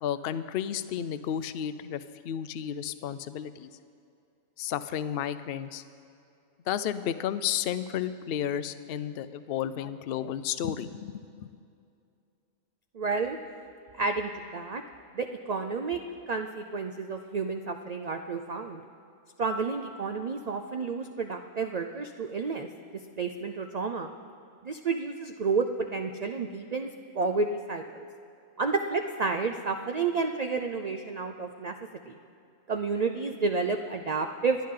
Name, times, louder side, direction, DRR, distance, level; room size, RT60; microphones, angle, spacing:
voice 1, 0.0-3.7 4.6-5.8 6.7-11.5, left 9 dB, 60° left, 13 dB, 0.7 m, -32 dB
voice 2, 12.9-13.4 13.9-14.8 15.1-16.0 16.3-18.8 19.4-22.7 22.9-24.1 24.6-28.0 28.6-31.8 32.1-32.2 32.7-34.6, right 4 dB, 55° right, 5 dB, 0.4 m, -30 dB
28.0 x 10.5 x 3.8 m, 2.5 s
omnidirectional pair, 1.4 m